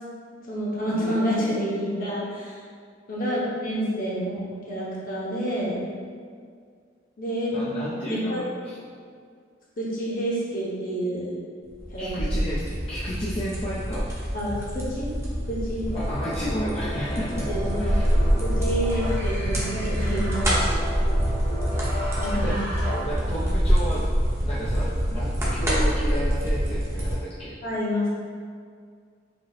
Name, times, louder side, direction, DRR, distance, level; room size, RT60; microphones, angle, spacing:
voice 1, 0.5-2.6 3.1-5.8 7.2-7.6 8.1-8.4 9.8-11.3 11.9-12.1 14.3-15.1 15.5-16.0 17.5-17.9 18.4-20.4 22.2-22.5 27.6-28.1, equal, 50° left, -6 dB, 1.1 m, -28 dB
voice 2, 7.5-8.9 12.0-14.1 15.9-17.5 17.8-18.2 22.3-22.6 23.0-24.1 24.4-27.6, equal, 30° left, -7 dB, 0.5 m, -32 dB
sound 1, 11.7-27.2, equal, 15° right, 0.8 m, -25 dB
sound 2, 15.9-23.6, equal, 50° right, 1.1 m, -35 dB
4.8 x 2.0 x 4.0 m, 2.1 s
head